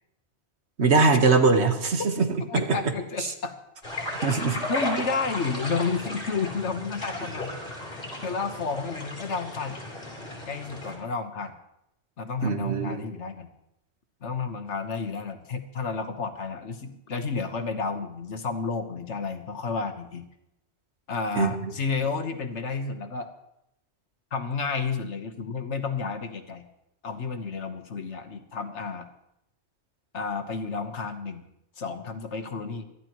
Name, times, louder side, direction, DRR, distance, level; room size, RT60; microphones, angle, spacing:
voice 1, 0.8-2.3 2.5-2.6 4.2-4.6 12.4-13.1 21.3-21.7, right 4 dB, 70° right, 6 dB, 1.6 m, -22 dB
voice 2, 2.5-3.5 4.7-7.5 8.2-9.8 10.5-11.5 12.2-13.5 14.2-20.2 21.1-23.3 24.3-26.6 27.0-29.1 30.1-31.5 31.8-32.8, left 4 dB, 80° left, 6 dB, 1.5 m, -31 dB
sound 1, 3.8-11.0, left 1 dB, 50° left, 3.6 m, -35 dB
22.5 x 13.5 x 3.1 m, 0.84 s
omnidirectional pair, 1.2 m